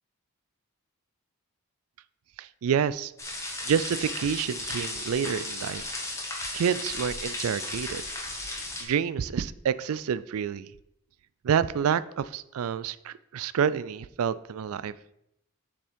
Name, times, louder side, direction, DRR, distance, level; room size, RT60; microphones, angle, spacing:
voice 1, 2.4-3.1 3.7-5.8 6.5-8.0 8.8-10.7 11.4-14.9, right 7 dB, 70° right, 16 dB, 0.3 m, -28 dB
sound 1, 3.2-8.8, left 2 dB, 15° left, 1.5 m, -35 dB
7.0 x 5.2 x 5.2 m, 0.82 s
head